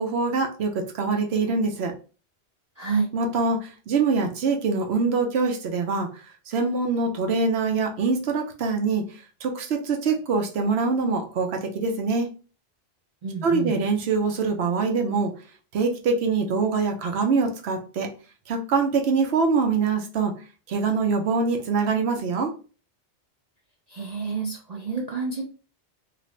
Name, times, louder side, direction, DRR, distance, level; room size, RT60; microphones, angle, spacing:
voice 1, 0.0-1.9 3.1-6.1 6.5-9.0 9.4-12.3 13.4-15.3 15.7-18.1 18.5-20.3 20.7-22.5, right 4 dB, 75° right, 4 dB, 0.9 m, -24 dB
voice 2, 2.8-3.1 13.2-13.7 23.9-25.4, right 5 dB, 55° right, -1 dB, 0.5 m, -28 dB
2.6 x 2.5 x 3.1 m, 0.35 s
omnidirectional pair, 1.1 m